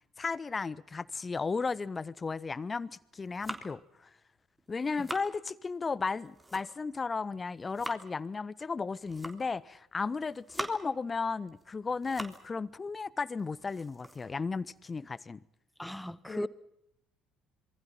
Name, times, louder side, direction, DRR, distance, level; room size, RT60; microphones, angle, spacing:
voice 1, 0.2-3.8 4.7-15.4 16.3-16.5, left 4 dB, 25° left, 1.2 m, -34 dB
sound 1, 3.0-3.9 4.6-5.3 6.1-7.0 7.4-8.1 8.9-9.6 10.1-11.0 11.5-12.5 12.9-13.0 13.4-15.2, right 2 dB, 15° right, 3.6 m, -44 dB
voice 2, 15.8-16.5, equal, 5° left, 1.4 m, -37 dB
27.0 x 23.5 x 5.9 m
figure-of-eight pair, 55°, 0 cm